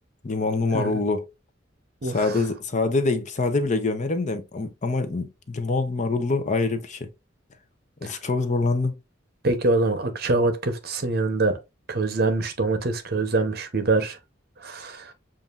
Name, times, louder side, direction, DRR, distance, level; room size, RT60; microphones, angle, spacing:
voice 1, 0.2-1.3 2.0-7.1 8.0-8.9, left 3 dB, 40° left, 0.7 m, -25 dB
voice 2, 2.0-2.3 8.0-8.1 9.4-11.6 11.9-14.2 14.6-15.1, right 3 dB, 55° right, 0.9 m, -24 dB
7.1 x 2.5 x 2.4 m
head